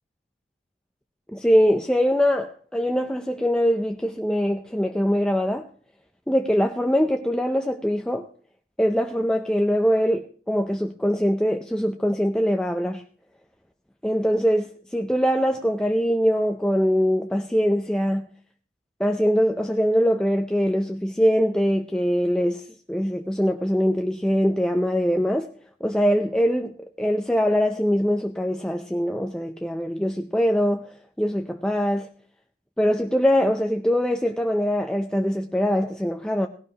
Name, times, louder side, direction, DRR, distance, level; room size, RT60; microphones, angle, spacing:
voice 1, 1.3-5.7 6.3-8.3 8.8-13.0 14.0-18.3 19.0-22.6 22.9-25.5 25.8-32.1 32.8-36.5, equal, 5° left, 0.5 m, -22 dB
17.5 x 16.5 x 2.9 m
head